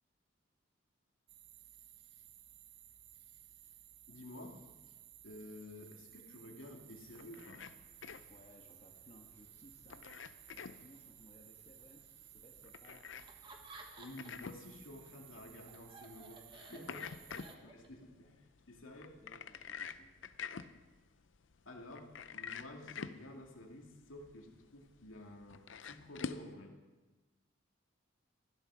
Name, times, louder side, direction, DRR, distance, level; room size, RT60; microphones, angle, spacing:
sound 1, 1.3-17.6, right 11 dB, 60° right, 0.8 m, -58 dB
voice 1, 4.1-4.6 4.9-5.0 5.2-7.7 14.0-17.1 17.6-19.1 21.7-26.7, left 1 dB, 85° left, 1 dB, 2.4 m, -51 dB
sound 2, 7.0-26.5, left 6 dB, 70° left, 0.6 m, -49 dB
voice 2, 8.3-10.0 10.5-13.0 16.7-17.7 18.2-18.3 19.2-20.1, left 1 dB, 30° left, 1 dB, 1.5 m, -61 dB
Laughter, 13.2-14.5 14.9-18.1, right 2 dB, 25° right, 1.4 m, -55 dB
15.0 x 11.5 x 6.2 m, 1.2 s
head